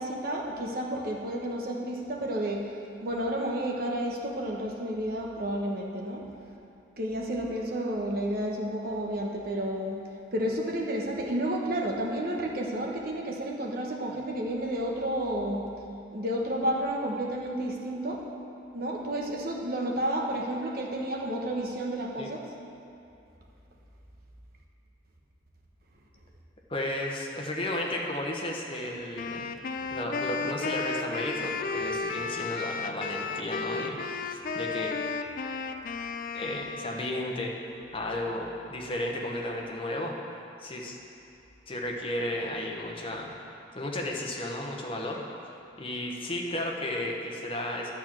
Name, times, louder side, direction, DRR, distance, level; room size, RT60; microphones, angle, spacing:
voice 1, 0.0-2.6 3.0-6.2 7.0-10.0 10.3-15.7 16.1-18.2 18.7-22.4, right 1 dB, 55° right, -1 dB, 1.2 m, -31 dB
voice 2, 26.7-29.5 29.9-34.9 36.3-37.5 37.9-40.2 40.6-41.0 41.7-43.3 43.7-45.2 45.8-47.9, left 1 dB, 30° left, -1 dB, 1.1 m, -33 dB
Wind instrument woodwind instrument, 29.2-37.3, left 4 dB, 50° left, 0.4 m, -34 dB
11.0 x 4.5 x 7.4 m, 2.8 s
head